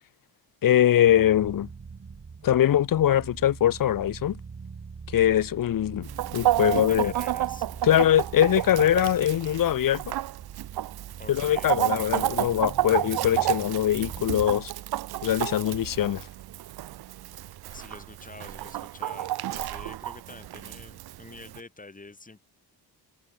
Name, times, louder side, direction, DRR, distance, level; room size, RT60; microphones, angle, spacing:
voice 1, 0.6-1.7 2.4-4.4 5.1-6.1 6.3-7.1 7.8-10.1 11.3-14.7 15.2-16.3, left 11 dB, 55° left, 1.2 m, -22 dB
sound 1, 1.1-14.3, right 5 dB, 35° right, 6.1 m, -43 dB
Chicken rooster, 6.0-21.6, right 14 dB, 70° right, 0.9 m, -31 dB
voice 2, 6.7-7.7 11.2-11.8 17.7-22.4, left 3 dB, 20° left, 7.2 m, -47 dB
cardioid pair, 115°, 39 cm